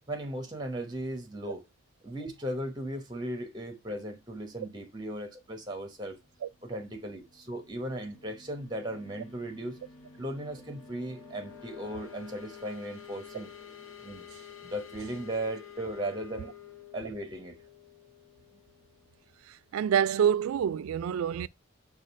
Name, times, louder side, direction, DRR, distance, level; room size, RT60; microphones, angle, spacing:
voice 1, 0.1-1.6 2.0-6.2 6.6-9.8 10.2-13.5 14.0-14.3 14.6-16.5 16.9-17.6, right 1 dB, 20° right, 0.9 m, -37 dB
sound 1, 7.2-19.7, left 7 dB, 85° left, 0.9 m, -50 dB
voice 2, 19.5-21.5, right 8 dB, 85° right, 0.3 m, -27 dB
5.0 x 2.4 x 4.0 m
head